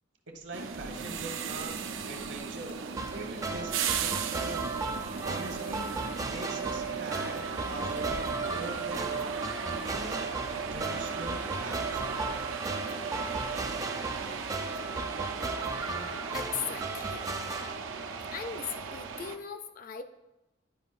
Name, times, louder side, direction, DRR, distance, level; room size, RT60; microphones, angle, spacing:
voice 1, 0.3-1.7 2.1-2.8 3.1-4.6 5.2-9.1 9.8-10.3 10.7-12.5 14.2-14.3, right 2 dB, 70° right, 3 dB, 1.1 m, -42 dB
sound 1, 0.5-19.4, right 6 dB, 90° right, 0.5 m, -36 dB
sound 2, 0.7-9.1, left 1 dB, 90° left, 0.8 m, -56 dB
sound 3, 3.0-17.7, right 3 dB, 20° right, 0.4 m, -36 dB
voice 2, 16.3-17.2 18.3-20.0, left 7 dB, 45° left, 8 dB, 0.4 m, -38 dB
10.0 x 5.1 x 2.4 m, 0.98 s
head